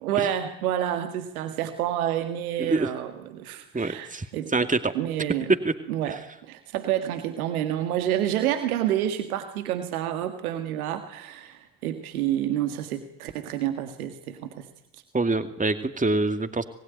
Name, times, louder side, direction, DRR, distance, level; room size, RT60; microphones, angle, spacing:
voice 1, 0.0-4.5 4.9-5.5 5.9-14.7, right 11 dB, 80° right, 8 dB, 1.9 m, -29 dB
voice 2, 3.7-4.2 4.5-4.9 5.6-5.7 15.1-16.6, right 3 dB, 20° right, 9 dB, 2.3 m, -25 dB
27.0 x 20.5 x 9.4 m, 0.85 s
figure-of-eight pair, 45°, 43 cm